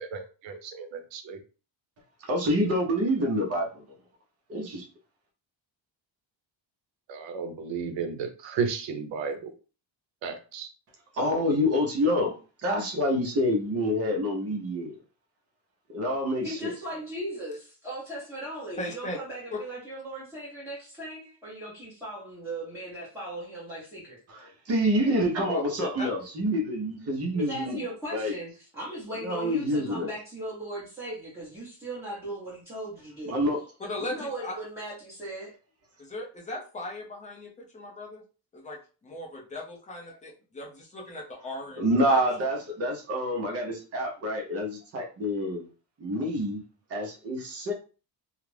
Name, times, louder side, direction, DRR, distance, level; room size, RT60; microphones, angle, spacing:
voice 1, 0.0-1.4 7.1-9.5 10.2-10.7, right 5 dB, 75° right, 7 dB, 0.7 m, -33 dB
voice 2, 2.2-3.8 4.5-4.9 11.1-15.0 15.9-16.7 24.3-27.8 28.1-28.3 29.2-30.1 33.3-33.6 41.8-45.7 46.0-46.6 46.9-47.7, equal, 35° right, 1 dB, 0.6 m, -27 dB
voice 3, 16.4-24.2 27.3-33.4 34.0-35.5 47.0-47.1, right 1 dB, 5° right, -10 dB, 0.8 m, -38 dB
voice 4, 18.8-19.2 25.5-25.6 26.0-26.1 33.8-34.6 36.0-38.2 38.5-42.2, left 1 dB, 15° left, -1 dB, 0.4 m, -38 dB
2.4 x 2.0 x 3.1 m, 0.36 s
cardioid pair, 180°, 45 cm